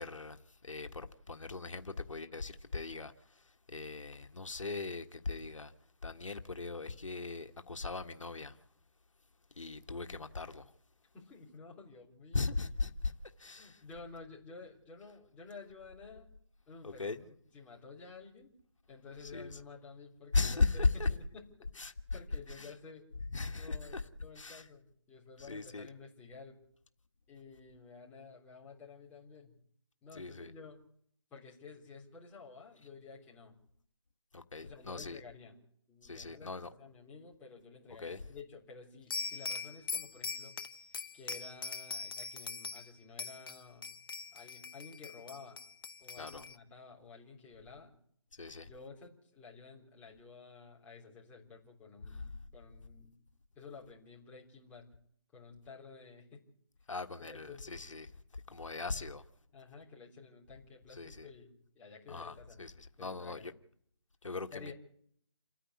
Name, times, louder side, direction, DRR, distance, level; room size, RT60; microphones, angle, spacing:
voice 1, 0.0-5.7 6.0-8.6 9.6-10.7 12.3-13.1 13.4-13.8 16.8-17.2 19.2-19.6 20.3-21.1 21.8-21.9 22.6-22.7 23.3-24.0 24.3-24.7 25.5-25.9 30.1-30.5 34.3-35.2 36.0-36.7 38.0-38.2 46.2-46.4 48.3-48.7 56.9-58.1 58.5-59.2 60.9-61.3 62.1-63.5 64.2-64.7, left 3 dB, 85° left, 1.6 m, -38 dB
voice 2, 11.1-12.4 13.6-16.3 16.7-18.5 18.9-21.4 22.1-23.1 23.6-26.6 27.3-29.6 30.0-30.8 31.3-33.5 34.6-35.5 35.9-40.6 41.1-43.9 44.3-45.6 46.0-47.9 48.7-53.1 53.6-54.9 55.3-56.4 56.8-56.9 57.2-57.7 59.5-62.6 63.0-63.5 64.5-64.7, left 4 dB, 10° left, 3.6 m, -52 dB
sound 1, 39.1-42.9 43.2-46.6, left 4 dB, 45° left, 1.0 m, -42 dB
28.5 x 10.0 x 9.6 m
figure-of-eight pair, 160°, 16 cm